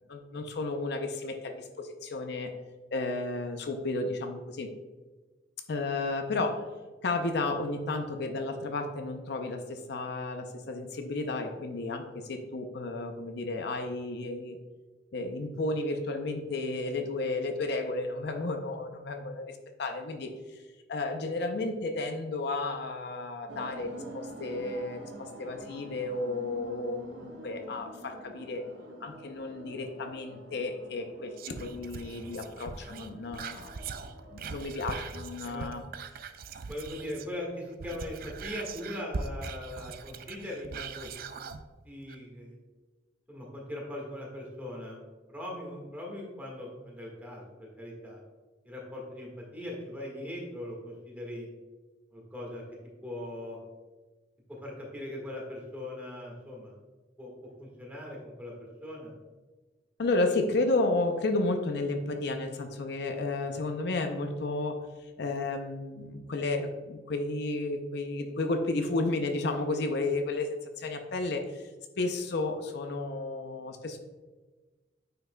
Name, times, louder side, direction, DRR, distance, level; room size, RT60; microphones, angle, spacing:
voice 1, 0.0-2.5 2.9-4.7 5.7-6.7 7.0-14.6 15.1-20.6 20.9-28.6 29.0-33.9 34.3-35.8 60.0-64.8 65.2-71.7 72.0-74.0, left 2 dB, 60° left, 5 dB, 0.5 m, -32 dB
sound 1, 23.5-35.1, right 1 dB, 75° right, 1.0 m, -47 dB
Whispering, 31.4-37.4 37.7-41.6 42.1-42.2, right 5 dB, 50° right, 0.4 m, -41 dB
voice 2, 36.7-41.1 41.8-42.6 43.3-45.0 45.3-48.2 48.6-51.5 52.1-52.6 53.0-53.6 54.5-56.7 57.2-59.1, left 1 dB, 10° right, -2 dB, 1.5 m, -40 dB
9.2 x 5.7 x 2.2 m, 1.3 s
head